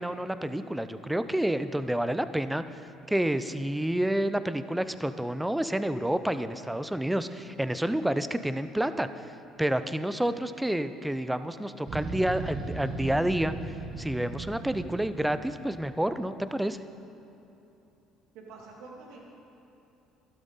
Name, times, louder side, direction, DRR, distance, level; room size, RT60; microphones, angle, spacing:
voice 1, 0.0-2.6 3.1-9.3 9.6-13.5 14.0-16.8, right 1 dB, 5° right, 12 dB, 0.6 m, -29 dB
sound 1, 11.9-16.1, right 3 dB, 40° right, 1.5 m, -38 dB
voice 2, 18.3-19.2, right 3 dB, 75° right, -2 dB, 2.3 m, -46 dB
12.5 x 12.0 x 4.1 m, 2.9 s
hypercardioid pair, 70°, 0 cm